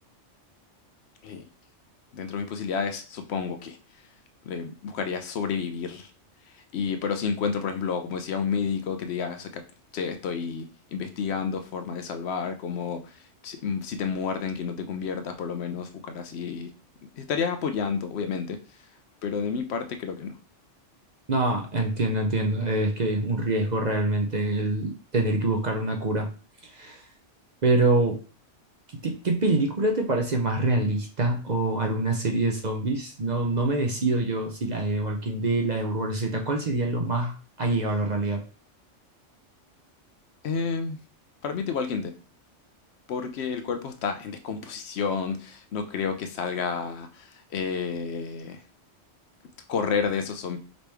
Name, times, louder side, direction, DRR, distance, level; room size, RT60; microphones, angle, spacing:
voice 1, 2.1-3.8 4.4-6.1 6.5-9.6 9.9-16.7 17.2-18.6 19.2-20.4 40.4-41.0 41.4-42.1 43.1-48.6 49.7-50.6, left 6 dB, 70° left, 7 dB, 0.8 m, -30 dB
voice 2, 21.3-26.3 26.6-27.0 27.6-28.2 29.0-38.4, right 2 dB, 45° right, 2 dB, 0.7 m, -25 dB
5.1 x 3.1 x 3.4 m, 0.37 s
omnidirectional pair, 1.2 m